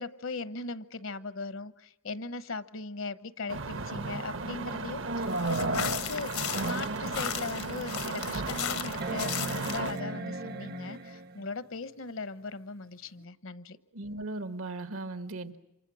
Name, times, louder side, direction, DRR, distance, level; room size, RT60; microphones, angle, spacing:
voice 1, 0.0-6.3 6.6-13.8, left 3 dB, 70° left, 14 dB, 1.0 m, -39 dB
sound 1, 3.5-9.9, right 3 dB, 60° right, 1.0 m, -34 dB
sound 2, 5.3-10.0, left 10 dB, 85° left, 1.4 m, -37 dB
sound 3, 9.0-11.5 13.2-13.3, right 2 dB, 45° right, 0.8 m, -38 dB
voice 2, 13.9-15.6, right 2 dB, 80° right, 10 dB, 1.5 m, -37 dB
28.5 x 26.0 x 6.2 m, 0.89 s
head